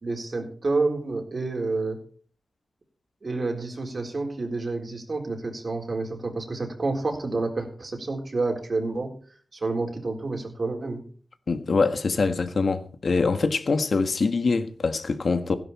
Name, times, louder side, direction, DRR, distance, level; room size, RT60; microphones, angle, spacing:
voice 1, 0.0-2.0 3.2-9.1 9.5-11.0, right 3 dB, 45° right, 3.9 m, -29 dB
voice 2, 11.5-15.6, left 4 dB, 60° left, 1.5 m, -24 dB
16.5 x 11.0 x 4.3 m
wide cardioid pair, 110°, 0 cm